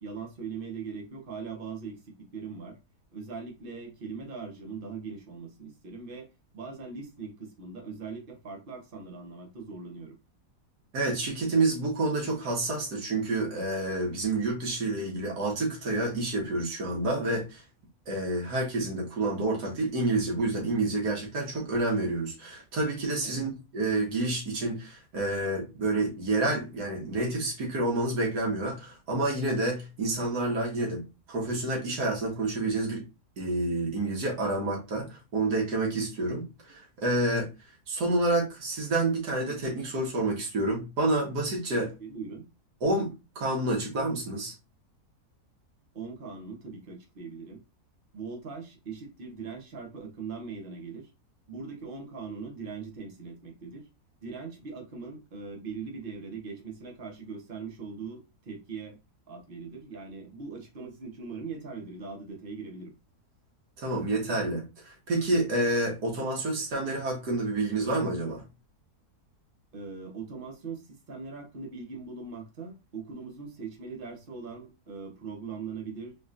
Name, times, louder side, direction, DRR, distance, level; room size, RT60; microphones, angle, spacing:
voice 1, 0.0-2.8 3.1-6.3 6.5-10.2 23.2-23.4 41.7-42.5 45.9-47.6 48.1-51.1 51.5-53.9 54.2-59.0 59.3-62.9 69.7-76.2, right 5 dB, 40° right, 1.0 m, -40 dB
voice 2, 10.9-17.6 18.1-33.0 33.4-41.9 42.8-44.5 63.8-68.4, right 2 dB, 85° right, 2.0 m, -29 dB
4.2 x 3.1 x 2.5 m
omnidirectional pair, 1.7 m